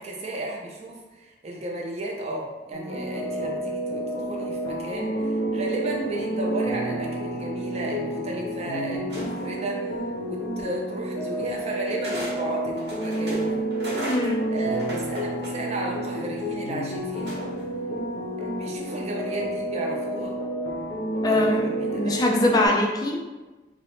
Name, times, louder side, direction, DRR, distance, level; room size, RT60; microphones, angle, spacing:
voice 1, 0.0-10.0 10.3-13.6 14.5-17.5 18.4-20.4 21.3-22.2, right 1 dB, 35° right, -2 dB, 0.5 m, -34 dB
sound 1, 2.7-22.7, right 1 dB, 90° left, 0.5 m, -29 dB
sound 2, 9.1-9.6 10.7-10.8 12.0-12.4 12.7-15.9 17.2-17.7, equal, 70° right, 0.9 m, -36 dB
voice 2, 14.1-14.5 21.2-23.2, left 2 dB, 20° left, 0 dB, 0.3 m, -23 dB
2.8 x 2.0 x 3.0 m, 1.2 s
head